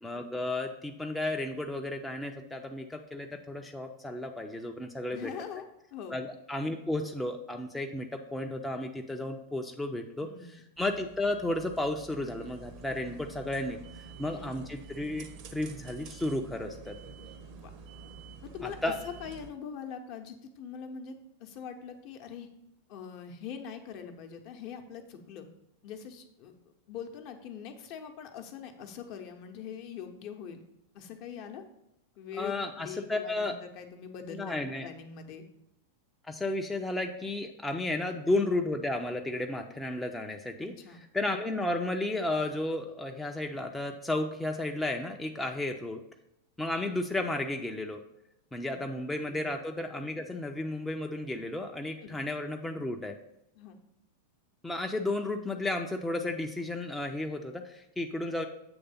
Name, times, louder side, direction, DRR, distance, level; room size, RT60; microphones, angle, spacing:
voice 1, 0.0-5.3 6.1-17.0 18.6-18.9 32.4-33.6 34.3-34.9 36.3-40.7 41.1-46.0 46.6-48.0 48.5-53.1 54.6-58.5, left 2 dB, 5° left, 3 dB, 0.5 m, -33 dB
voice 2, 5.1-5.6 5.9-6.2 10.2-10.6 14.2-14.6 17.5-17.7 18.4-18.8 19.0-21.1 21.4-22.5 22.9-25.5 25.8-26.5 26.9-30.6 30.9-31.6 32.2-34.5 34.8-35.4 37.9-38.2 40.6-41.0 48.6-48.8 49.2-49.5 52.0-52.2 53.6-53.8, left 7 dB, 45° left, 6 dB, 0.8 m, -43 dB
sound 1, 10.8-19.5, right 5 dB, 45° right, 0.7 m, -48 dB
7.8 x 3.3 x 5.5 m, 0.80 s
figure-of-eight pair, 90°, 0 cm